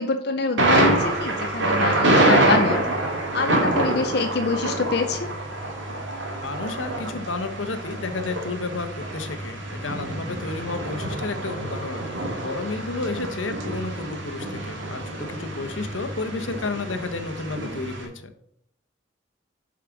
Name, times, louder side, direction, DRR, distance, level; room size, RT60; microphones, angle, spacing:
voice 1, 0.0-2.8 3.3-5.3, left 4 dB, 55° left, 6 dB, 0.6 m, -25 dB
Thunder, 0.6-18.0, right 1 dB, 75° right, 2.1 m, -26 dB
voice 2, 6.4-12.0 12.4-18.3, left 3 dB, 80° left, 9 dB, 1.0 m, -31 dB
7.3 x 4.9 x 6.0 m, 0.73 s
head